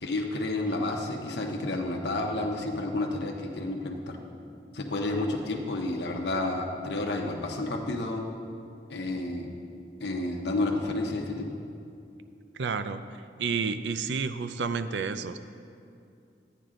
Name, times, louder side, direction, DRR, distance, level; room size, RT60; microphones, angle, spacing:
voice 1, 0.0-4.2 4.7-8.3 8.9-9.5 10.0-11.6, left 2 dB, 75° left, 2 dB, 0.9 m, -30 dB
voice 2, 12.6-13.0 13.4-15.4, right 5 dB, 85° right, 11 dB, 0.5 m, -30 dB
12.0 x 9.2 x 3.8 m, 2.5 s
head